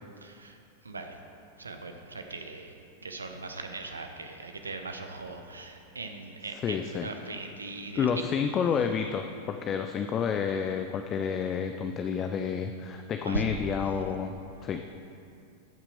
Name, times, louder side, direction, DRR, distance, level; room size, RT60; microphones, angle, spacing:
voice 1, 0.2-0.6 0.8-1.2 1.6-2.7 3.0-8.1 13.2-13.4, right 3 dB, 75° right, 6 dB, 0.8 m, -39 dB
voice 2, 6.5-7.4 7.9-14.3 14.6-14.8, left 7 dB, 30° left, 6 dB, 0.4 m, -30 dB
14.0 x 5.9 x 4.8 m, 2.6 s
figure-of-eight pair, 90°, 0 cm